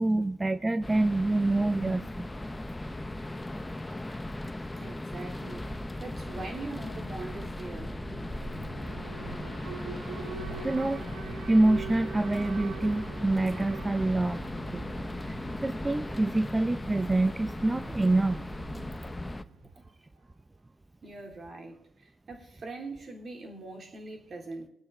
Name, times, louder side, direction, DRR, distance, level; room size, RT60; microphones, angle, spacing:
voice 1, 0.0-2.0 10.6-11.0 11.5-14.4 14.7-14.8 15.2-18.5, right 2 dB, 20° right, 0.6 m, -26 dB
sound 1, 0.8-19.4, left 1 dB, 15° left, 0.8 m, -38 dB
voice 2, 4.8-8.0 19.1-19.2 19.8-19.9 21.0-24.7, right 3 dB, 55° right, 3.4 m, -42 dB
Alarm, 7.8-19.8, right 5 dB, 85° right, 1.2 m, -44 dB
20.5 x 8.9 x 3.9 m
supercardioid pair, 55°, 0 cm